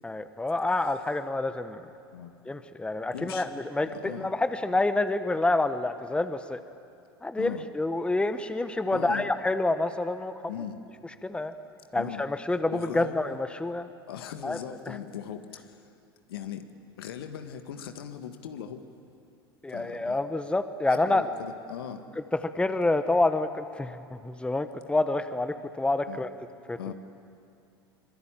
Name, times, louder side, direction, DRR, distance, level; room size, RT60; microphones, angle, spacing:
voice 1, 0.0-1.8 2.5-6.6 7.2-10.3 11.2-11.5 11.9-13.9 14.4-14.6 14.9-15.0 19.6-21.3 22.3-24.0 24.2-26.3 26.7-26.8, left 2 dB, 10° left, 10 dB, 1.3 m, -28 dB
voice 2, 3.1-3.5 3.8-4.3 7.4-7.6 8.9-9.3 10.5-10.8 12.0-12.2 12.7-13.2 14.1-15.9 16.3-16.7 17.0-18.9 19.7-20.2 20.9-22.1 26.1-26.2 26.8-26.9, left 9 dB, 70° left, 7 dB, 1.7 m, -39 dB
25.5 x 23.5 x 9.1 m, 2.5 s
figure-of-eight pair, 80°, 13 cm